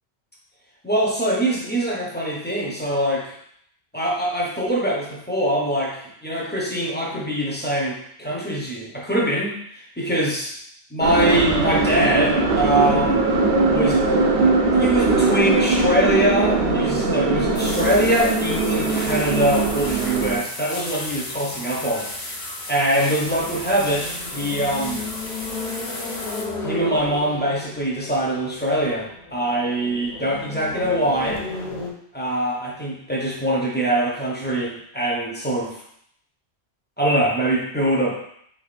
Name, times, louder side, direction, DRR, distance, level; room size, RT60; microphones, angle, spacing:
voice 1, 0.8-3.3 3.9-10.5 10.9-13.3 13.7-14.0 14.7-22.1 22.7-24.1 24.3-25.1 26.6-31.4 32.1-35.8 37.0-38.2, right 1 dB, 15° left, -4 dB, 0.4 m, -23 dB
sound 1, 11.0-20.4, right 3 dB, 65° right, 0.7 m, -20 dB
sound 2, 17.5-26.4, left 1 dB, 70° left, 1.1 m, -34 dB
sound 3, 23.2-31.9, left 3 dB, 45° left, 0.7 m, -34 dB
3.4 x 3.3 x 2.4 m, 0.69 s
omnidirectional pair, 1.1 m